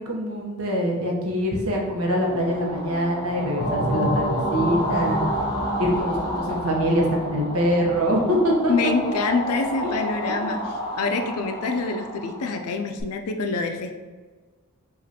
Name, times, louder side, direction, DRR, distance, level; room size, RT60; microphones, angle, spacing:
voice 1, 0.0-5.2 5.8-8.7 9.8-9.9, equal, 65° right, -1 dB, 0.9 m, -24 dB
sound 1, 1.9-13.0, equal, 20° left, 0.7 m, -32 dB
sound 2, 3.6-8.0, equal, 10° right, 1.3 m, -28 dB
voice 2, 8.7-13.9, left 4 dB, 75° left, 5 dB, 0.4 m, -26 dB
5.0 x 2.5 x 2.8 m, 1.4 s
head